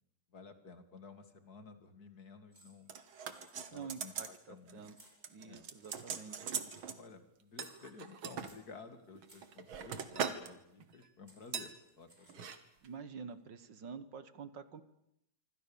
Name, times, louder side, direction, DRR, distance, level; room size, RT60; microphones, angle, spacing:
voice 1, 0.3-2.9 3.7-4.8 5.5-5.7 7.0-12.5, left 4 dB, 50° left, 9 dB, 2.5 m, -54 dB
sound 1, 2.5-2.9 3.2-3.8 4.1-4.5 4.9-5.5 5.8-6.3 6.7-7.1 7.6-8.7 9.3-9.6 10.8-10.9 11.3-12.5, right 1 dB, 20° right, 5.7 m, -63 dB
sound 2, 2.9-4.4 4.7-4.9 5.2-7.0 7.6-8.5 9.1-10.5 10.8-11.0 11.5-11.7 12.3-12.6 12.8-12.9, right 7 dB, 85° right, 2.4 m, -41 dB
voice 2, 3.7-4.9 5.3-6.4 12.8-14.8, right 6 dB, 65° right, 13 dB, 2.0 m, -48 dB
26.5 x 24.5 x 7.1 m, 0.80 s
omnidirectional pair, 2.2 m